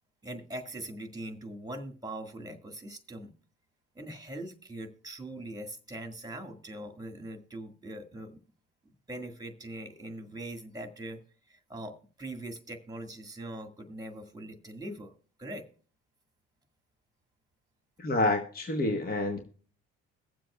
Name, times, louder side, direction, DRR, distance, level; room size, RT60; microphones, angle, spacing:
voice 1, 0.2-3.3 4.0-8.4 9.1-11.2 11.5-15.1 15.4-15.7, right 1 dB, 10° right, 5 dB, 1.8 m, -41 dB
voice 2, 18.0-19.4, left 2 dB, 25° left, 5 dB, 1.2 m, -28 dB
22.5 x 7.5 x 2.3 m, 0.42 s
hypercardioid pair, 60°, 38 cm